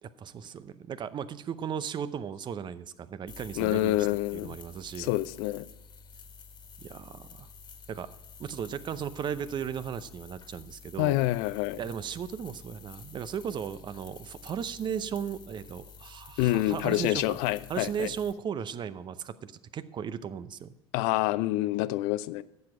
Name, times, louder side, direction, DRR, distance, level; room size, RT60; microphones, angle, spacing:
voice 1, 0.0-4.1 4.3-5.1 6.8-7.5 7.9-8.1 8.4-11.2 11.8-17.4 17.7-20.7, right 8 dB, 35° right, 0.7 m, -36 dB
sound 1, 3.3-18.3, left 5 dB, 35° left, 1.8 m, -50 dB
voice 2, 3.6-4.5 5.0-5.7 11.0-11.8 16.4-18.1 20.9-22.4, left 16 dB, 60° left, 0.5 m, -27 dB
12.0 x 7.7 x 4.9 m
hypercardioid pair, 75°, 14 cm